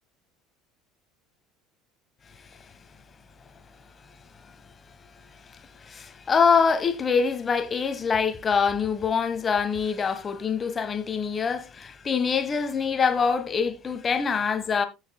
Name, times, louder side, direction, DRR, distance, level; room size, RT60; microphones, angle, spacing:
voice 1, 5.5-14.9, left 6 dB, 30° left, 1.4 m, -25 dB
16.0 x 6.5 x 2.3 m
hypercardioid pair, 80°, 0 cm